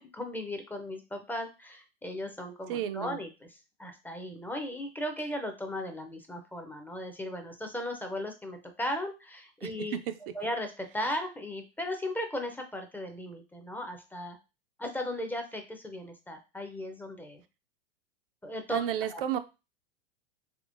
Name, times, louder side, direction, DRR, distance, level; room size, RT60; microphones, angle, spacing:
voice 1, 0.0-10.0 10.3-14.4 14.8-17.4 18.4-18.8 19.1-19.2, left 1 dB, 5° left, 5 dB, 0.4 m, -37 dB
voice 2, 2.7-3.2 9.6-10.0 18.7-19.4, right 10 dB, 70° right, 9 dB, 0.5 m, -32 dB
3.6 x 2.9 x 2.5 m, 0.28 s
hypercardioid pair, 120°, 30 cm